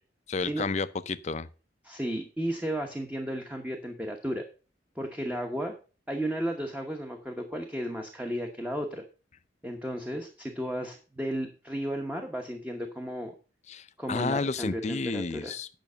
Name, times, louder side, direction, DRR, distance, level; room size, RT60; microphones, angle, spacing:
voice 1, 0.3-1.5 13.7-15.7, left 4 dB, 35° left, 0.5 m, -31 dB
voice 2, 1.8-4.4 4.9-5.8 6.1-9.0 9.6-13.3 14.0-15.5, equal, 10° right, 1.0 m, -34 dB
9.1 x 6.0 x 5.5 m
head